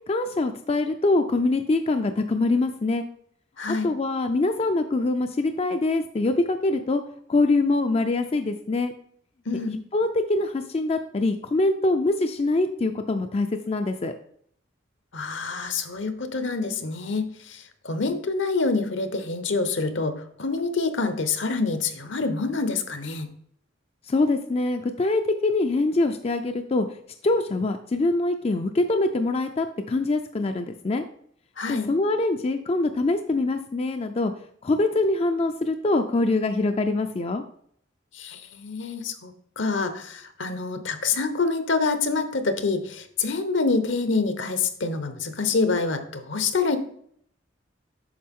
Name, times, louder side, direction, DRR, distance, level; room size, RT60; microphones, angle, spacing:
voice 1, 0.1-3.0 3.7-7.0 7.3-8.9 9.7-14.1 24.0-26.9 27.2-31.0 31.7-34.3 34.6-37.4, left 2 dB, 30° left, 7 dB, 0.4 m, -24 dB
voice 2, 3.6-3.9 9.5-9.8 15.1-23.3 31.6-31.9 38.1-46.8, left 4 dB, 70° left, 9 dB, 1.0 m, -26 dB
8.6 x 6.0 x 3.6 m, 0.65 s
head